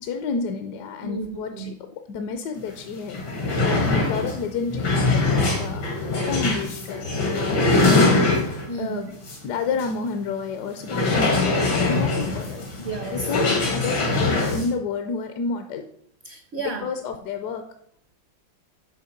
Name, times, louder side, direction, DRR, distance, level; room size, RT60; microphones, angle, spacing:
voice 1, 0.0-3.2 3.6-5.8 6.2-7.7 8.7-9.1 9.4-12.6 13.1-15.9 16.6-17.6, left 5 dB, 70° left, 7 dB, 1.1 m, -30 dB
voice 2, 1.0-1.7 8.7-9.1 12.8-13.4 16.2-16.9, right 3 dB, 60° right, 6 dB, 0.7 m, -32 dB
sound 1, 2.7-2.8 3.1-8.8 9.3-9.4 9.8-9.9 10.8-14.7, left 2 dB, 85° left, 2.6 m, -22 dB
6.4 x 4.4 x 5.8 m, 0.66 s
omnidirectional pair, 2.1 m